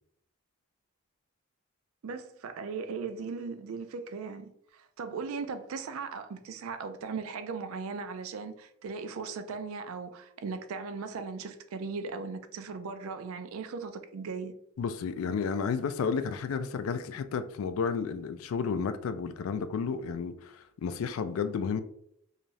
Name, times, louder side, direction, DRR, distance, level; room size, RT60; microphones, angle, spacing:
voice 1, 2.0-14.5, right 5 dB, 80° right, 0.4 m, -38 dB
voice 2, 14.8-21.8, left 6 dB, 75° left, 0.3 m, -32 dB
2.6 x 2.4 x 3.1 m
head